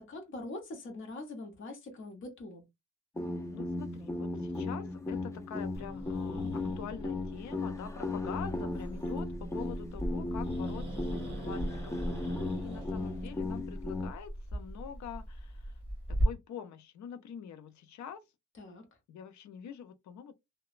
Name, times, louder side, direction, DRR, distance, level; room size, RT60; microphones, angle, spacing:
voice 1, 0.0-2.6 18.6-18.9, left 2 dB, 40° left, 0.9 m, -43 dB
sound 1, 3.2-14.1, left 2 dB, 10° left, 0.3 m, -36 dB
voice 2, 3.5-15.8 16.1-18.2 19.1-20.3, left 8 dB, 70° left, 0.6 m, -45 dB
Growling, 5.7-16.2, right 1 dB, 5° right, 1.6 m, -39 dB
3.0 x 2.1 x 2.4 m
wide cardioid pair, 145°, 30 cm